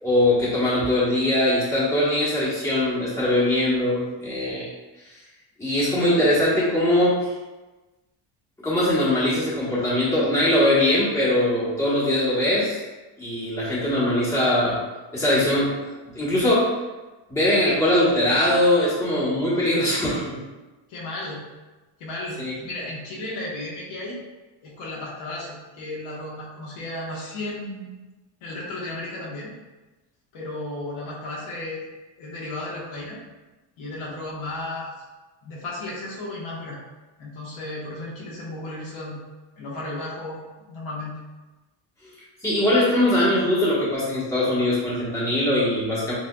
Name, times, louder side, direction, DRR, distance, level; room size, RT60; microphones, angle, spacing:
voice 1, 0.0-4.7 5.6-7.3 8.6-12.8 13.2-14.8 15.1-15.7 16.1-16.7 17.3-20.4 22.4-22.5 42.4-46.1, left 1 dB, 5° left, -9 dB, 1.2 m, -21 dB
voice 2, 20.9-21.4 22.0-24.2 24.6-27.9 28.4-29.5 30.3-31.8 32.2-33.2 33.8-34.9 35.4-36.8 37.2-39.2 39.6-41.1, left 2 dB, 85° left, -5 dB, 1.5 m, -34 dB
6.6 x 2.6 x 2.3 m, 1.2 s
cardioid pair, 170°, 47 cm